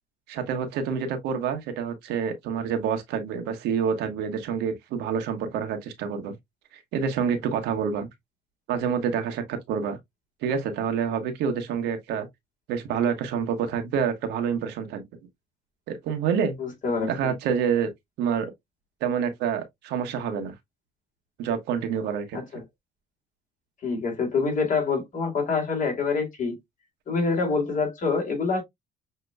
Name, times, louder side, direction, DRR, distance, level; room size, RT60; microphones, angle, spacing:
voice 1, 0.3-6.3 6.7-8.1 8.7-10.0 10.4-12.3 12.7-15.0 15.9-16.6 17.1-17.9 18.2-18.5 19.0-20.5 21.4-22.4, right 7 dB, 85° right, 1.2 m, -27 dB
voice 2, 16.6-17.3 22.3-22.6 23.8-26.6 27.1-28.6, left 4 dB, 50° left, 2.5 m, -26 dB
6.6 x 2.9 x 2.2 m
cardioid pair, 110°, 17 cm